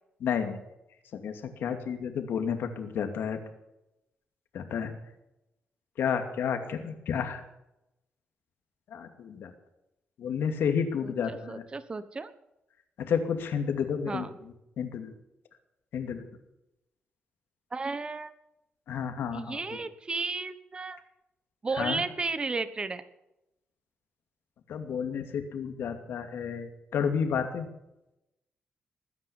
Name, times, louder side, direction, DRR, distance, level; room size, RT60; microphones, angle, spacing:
voice 1, 0.2-0.6 1.1-1.3 1.6-3.4 4.5-4.9 6.0-7.4 8.9-9.5 10.2-11.6 13.0-14.3 14.8-15.1 15.9-16.2 18.9-19.6 21.8-22.0 24.7-27.7, left 7 dB, 85° left, 7 dB, 2.5 m, -31 dB
voice 2, 11.0-12.3 14.1-14.3 17.7-18.3 19.3-21.0 21.6-23.0, right 3 dB, 25° right, 13 dB, 1.2 m, -33 dB
20.5 x 9.9 x 7.1 m, 0.89 s
cardioid pair, 120°, 4 cm